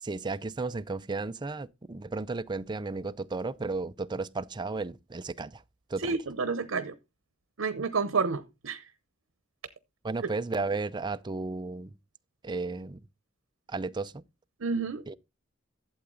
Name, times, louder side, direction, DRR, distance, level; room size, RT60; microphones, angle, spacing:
voice 1, 0.0-5.6 5.9-6.2 10.0-12.0 12.4-13.0 13.7-14.2 15.1-15.2, right 3 dB, 25° right, 0.5 m, -34 dB
voice 2, 6.0-6.9 7.6-8.8 14.6-15.0, right 4 dB, 85° right, 0.8 m, -29 dB
12.0 x 8.0 x 3.9 m
head